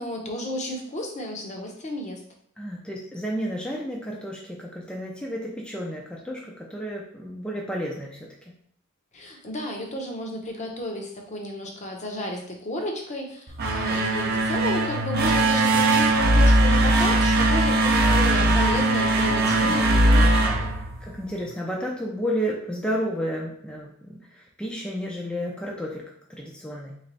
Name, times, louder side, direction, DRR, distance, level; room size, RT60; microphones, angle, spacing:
voice 1, 0.0-2.2 9.1-20.8, left 1 dB, 35° left, 2 dB, 0.8 m, -32 dB
voice 2, 2.6-8.5 19.3-19.8 21.0-26.9, equal, 5° left, -3 dB, 0.5 m, -32 dB
sound 1, 13.5-21.4, right 1 dB, 50° right, 0.6 m, -20 dB
3.4 x 3.2 x 3.9 m, 0.64 s
head